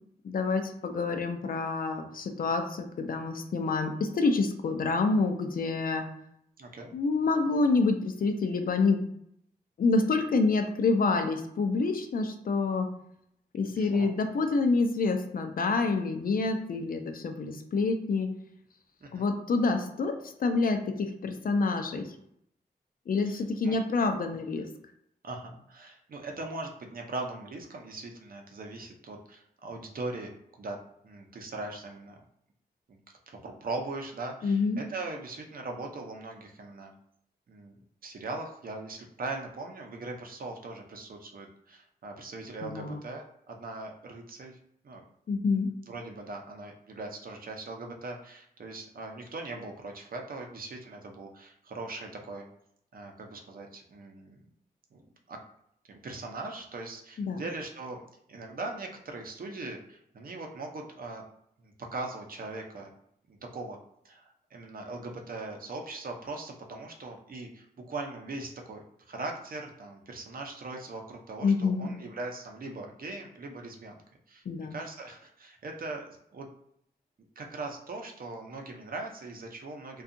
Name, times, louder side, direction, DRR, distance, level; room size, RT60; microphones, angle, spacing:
voice 1, 0.2-6.1 6.9-9.1 9.8-12.9 13.5-18.4 19.1-22.1 23.1-24.7 34.4-34.8 42.6-43.0 45.3-45.7 57.2-57.4 71.4-71.9 74.5-74.7, left 3 dB, 60° left, 6 dB, 0.4 m, -27 dB
voice 2, 6.6-6.9 13.7-14.1 19.0-19.3 23.2-23.8 25.2-30.8 31.0-32.2 32.9-33.0 33.3-36.9 37.5-37.8 38.0-44.6 44.8-45.0 45.9-52.5 52.9-54.5 54.9-55.0 55.3-55.4 55.9-58.0 58.3-61.2 61.6-62.9 63.3-63.8 64.0-74.0 74.3-74.4 74.7-76.5 77.4-80.0, right 2 dB, 60° right, 2 dB, 0.6 m, -40 dB
2.6 x 2.3 x 2.5 m, 0.72 s
cardioid pair, 75°, 17 cm